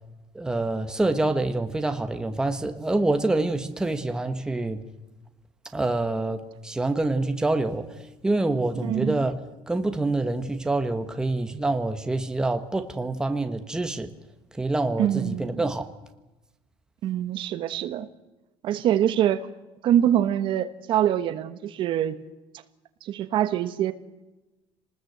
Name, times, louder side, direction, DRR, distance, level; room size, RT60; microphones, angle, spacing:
voice 1, 0.3-4.8 5.7-7.9 8.2-9.4 9.7-14.1 14.6-15.9, right 2 dB, 5° right, 1.3 m, -26 dB
voice 2, 8.8-9.1 15.0-15.6 17.0-18.1 18.6-19.5 19.8-22.2 23.0-23.9, right 11 dB, 50° right, 1.3 m, -24 dB
27.5 x 20.0 x 8.0 m
cardioid pair, 180°, 11 cm